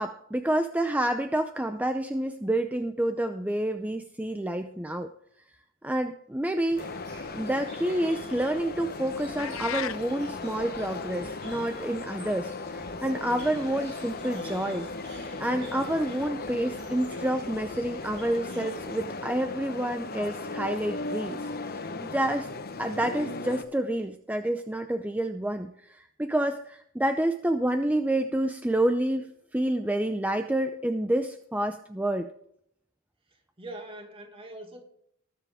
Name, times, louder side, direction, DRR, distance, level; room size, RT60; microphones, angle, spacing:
voice 1, 0.0-5.1 5.8-6.8 7.4-22.5 22.8-32.3, right 1 dB, 5° right, 0.6 m, -29 dB
sound 1, 6.7-19.1, right 2 dB, 60° right, 5.3 m, -51 dB
sound 2, 6.8-23.6, left 3 dB, 45° left, 1.0 m, -37 dB
sound 3, 9.4-10.0, left 9 dB, 70° left, 0.6 m, -33 dB
voice 2, 13.2-13.6 33.3-34.8, right 1 dB, 25° right, 2.2 m, -43 dB
20.0 x 7.4 x 3.6 m
head